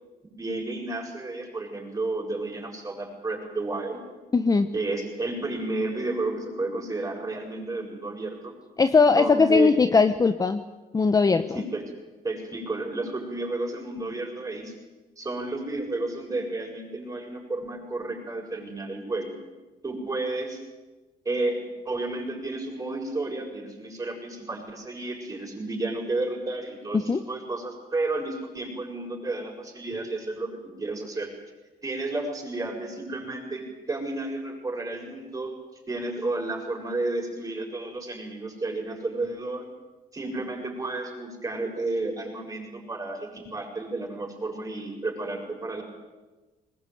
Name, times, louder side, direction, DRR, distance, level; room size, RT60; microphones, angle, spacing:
voice 1, 0.4-4.0 4.7-8.5 9.1-9.7 11.5-11.8 12.2-14.7 15.2-19.4 19.8-20.6 21.2-21.6 21.8-31.3 31.8-35.5 35.9-39.6 40.1-45.8, right 2 dB, 20° right, 1 dB, 7.5 m, -32 dB
voice 2, 4.3-4.7 8.8-10.6 10.9-11.6 26.9-27.2, left 4 dB, 20° left, 10 dB, 1.0 m, -20 dB
21.5 x 19.5 x 9.2 m, 1.2 s
cardioid pair, 110°, 17 cm